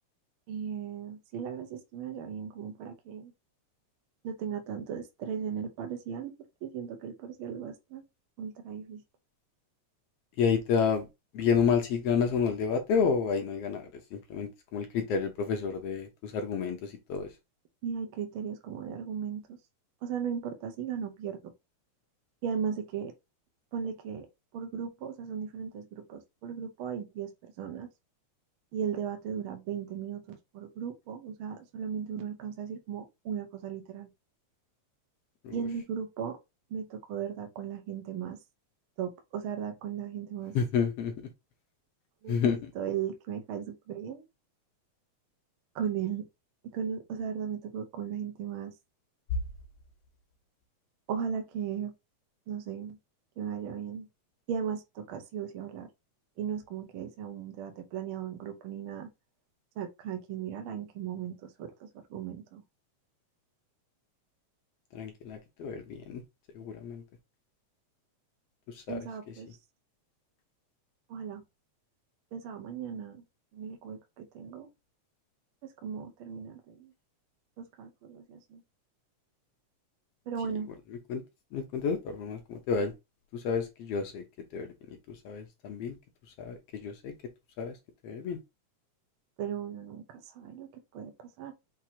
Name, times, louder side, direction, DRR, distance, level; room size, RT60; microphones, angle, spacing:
voice 1, 0.5-3.3 4.2-6.3 6.6-8.0 8.4-9.0 17.8-19.6 20.0-21.5 22.4-23.1 23.7-24.3 24.5-27.9 28.7-34.1 35.5-36.4 36.7-38.4 39.0-40.6 42.2-42.4 42.7-44.2 45.7-46.3 46.7-48.7 51.1-51.9 52.5-53.0 53.4-54.1 54.5-55.9 56.4-59.1 59.8-62.6 68.9-69.5 71.1-71.4 72.3-73.2 73.5-74.7 75.8-76.9 77.6-78.6 80.3-80.7 89.4-90.7 90.9-91.5, right 7 dB, 65° right, 1.4 m, -36 dB
voice 2, 10.4-11.1 11.3-17.3 35.4-35.5 40.5-41.1 42.3-42.7 64.9-66.2 66.5-67.0 68.7-69.0 81.1-81.2 81.5-82.9 83.3-84.2 84.5-85.9 86.4-87.1 87.6-87.7 88.0-88.4, left 6 dB, 70° left, 1.7 m, -30 dB
5.9 x 2.9 x 2.8 m
omnidirectional pair, 3.3 m